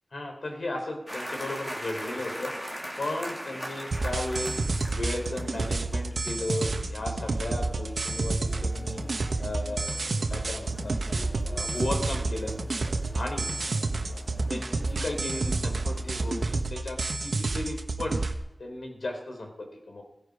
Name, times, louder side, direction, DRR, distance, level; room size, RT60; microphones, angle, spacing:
voice 1, 0.1-2.5 3.0-4.5 4.9-9.1 9.4-10.0 10.3-11.0 11.5-12.5 13.1-13.5 14.5-18.2 18.6-20.0, left 1 dB, 75° left, 3 dB, 4.0 m, -35 dB
sound 1, 1.1-16.6, equal, 15° left, 3.0 m, -42 dB
sound 2, 3.9-18.3, right 3 dB, 80° right, 1.3 m, -30 dB
17.0 x 17.0 x 5.0 m, 0.91 s
wide cardioid pair, 60°, 0 cm